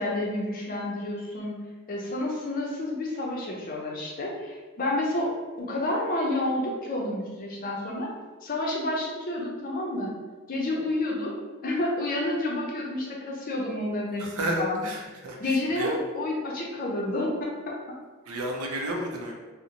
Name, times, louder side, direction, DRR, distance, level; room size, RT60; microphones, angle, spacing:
voice 1, 0.0-1.6 1.9-5.3 5.6-8.1 8.4-10.1 10.5-11.3 11.6-14.8 15.4-17.7, left 1 dB, 40° left, -2 dB, 0.5 m, -29 dB
voice 2, 14.2-15.9 18.3-19.3, right 1 dB, 80° right, 0 dB, 0.5 m, -31 dB
2.6 x 2.0 x 2.7 m, 1.4 s
head